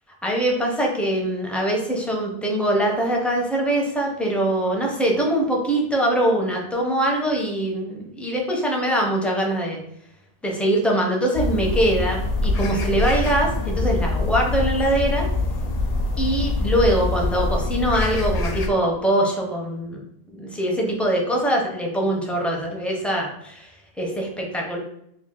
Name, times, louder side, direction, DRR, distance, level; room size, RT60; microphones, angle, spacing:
voice 1, 0.2-9.8 10.4-15.3 16.2-20.0 20.3-24.8, right 1 dB, ahead, -1 dB, 0.5 m, -23 dB
sound 1, 11.4-18.7, left 2 dB, 55° left, 0.4 m, -24 dB
3.1 x 2.4 x 3.7 m, 0.74 s
omnidirectional pair, 1.1 m